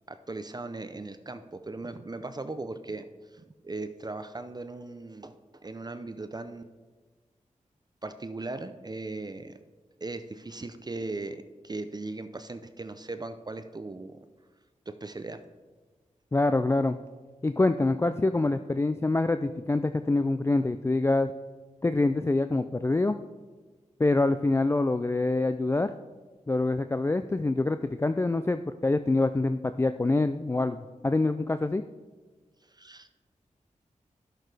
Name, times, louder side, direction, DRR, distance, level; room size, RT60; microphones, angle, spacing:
voice 1, 0.1-3.1 3.3-5.4 5.6-6.6 8.0-9.6 10.0-14.2 15.0-15.4 32.7-33.1, right 2 dB, 30° right, 10 dB, 0.5 m, -38 dB
voice 2, 16.3-17.0 17.4-21.3 21.8-23.2 24.0-25.9 26.5-31.8, left 2 dB, 20° left, 10 dB, 0.3 m, -25 dB
12.0 x 6.5 x 3.4 m, 1.3 s
cardioid pair, 50°, 14 cm